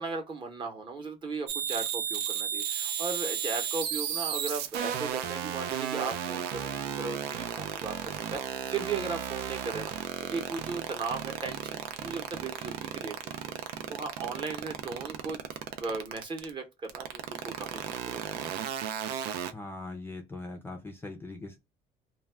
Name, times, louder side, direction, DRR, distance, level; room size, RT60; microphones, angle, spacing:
voice 1, 0.0-8.0 8.3-13.1 13.9-15.4 15.8-18.2, right 4 dB, 30° right, 0.8 m, -37 dB
sound 1, 1.5-16.5 16.9-19.5, right 9 dB, 85° right, 0.5 m, -33 dB
voice 2, 19.5-21.6, left 2 dB, 15° left, 0.4 m, -41 dB
2.3 x 2.2 x 3.2 m
cardioid pair, 140°, 16 cm